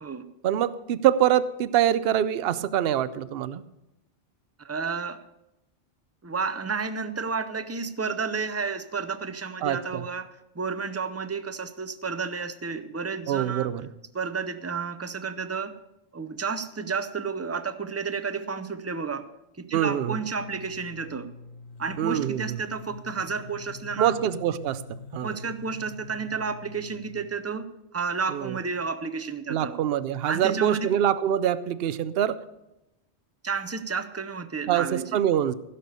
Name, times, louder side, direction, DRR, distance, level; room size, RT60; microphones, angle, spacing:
voice 1, 0.4-3.6 9.6-10.0 13.3-13.9 19.7-20.2 22.0-22.6 24.0-24.8 25.1-25.4 28.3-28.6 29.5-32.4 34.7-35.5, right 10 dB, 65° right, 15 dB, 0.8 m, -24 dB
voice 2, 4.6-5.2 6.2-10.3 10.5-13.7 14.1-15.8 16.1-19.3 19.6-21.3 21.8-24.2 25.2-29.8 30.3-30.9 33.4-35.1, right 5 dB, 20° right, 11 dB, 0.5 m, -31 dB
sound 1, 20.4-27.3, left 5 dB, 75° left, 0.8 m, -44 dB
15.5 x 6.8 x 6.7 m, 0.92 s
omnidirectional pair, 1.2 m